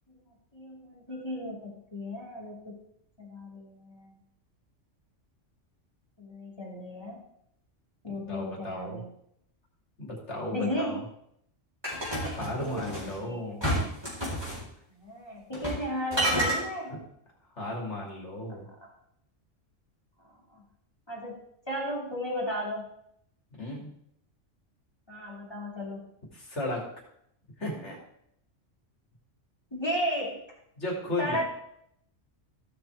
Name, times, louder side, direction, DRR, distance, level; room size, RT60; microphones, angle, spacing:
voice 1, 0.5-2.8 3.2-4.2 6.2-7.2 8.0-9.1 10.5-11.0 12.6-13.4 15.0-17.0 18.5-18.8 20.5-20.6 21.1-21.4 21.7-22.9 25.1-26.0 29.7-30.4 31.2-31.4, equal, 20° left, -3 dB, 2.7 m, -34 dB
voice 2, 8.1-9.0 10.0-11.0 12.2-13.7 16.9-17.0 17.5-18.7 23.6-23.9 26.3-26.8 27.6-28.0 30.8-31.4, left 1 dB, 65° left, -2 dB, 3.1 m, -35 dB
sound 1, 11.8-13.1 13.6-14.6 15.5-15.8 16.1-16.6, right 1 dB, 20° right, 4.2 m, -29 dB
15.5 x 5.9 x 4.7 m, 0.73 s
omnidirectional pair, 1.3 m